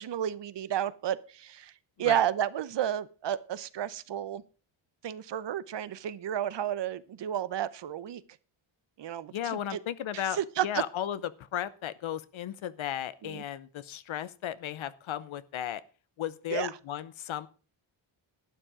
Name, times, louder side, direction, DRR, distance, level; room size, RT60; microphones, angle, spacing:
voice 1, 0.0-1.7 2.0-4.4 5.0-8.2 9.0-9.8 10.1-10.8 13.2-13.4 16.5-16.7, right 10 dB, 55° right, 17 dB, 0.9 m, -32 dB
voice 2, 9.3-10.4 10.6-15.8 16.2-17.5, left 11 dB, 70° left, 16 dB, 0.8 m, -35 dB
12.0 x 8.9 x 4.9 m, 0.36 s
cardioid pair, 100°, 50 cm